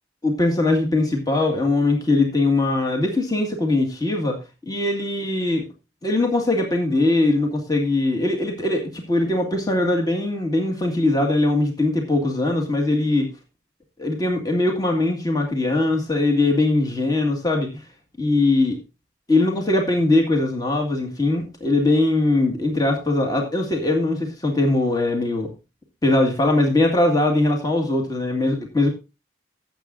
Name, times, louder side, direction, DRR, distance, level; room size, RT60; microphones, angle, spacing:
voice 1, 0.2-4.4 4.7-5.7 6.0-13.3 14.0-17.8 18.2-18.8 19.3-25.5 26.0-28.9, left 2 dB, 20° left, 1.9 m, -21 dB
16.0 x 7.5 x 2.6 m
head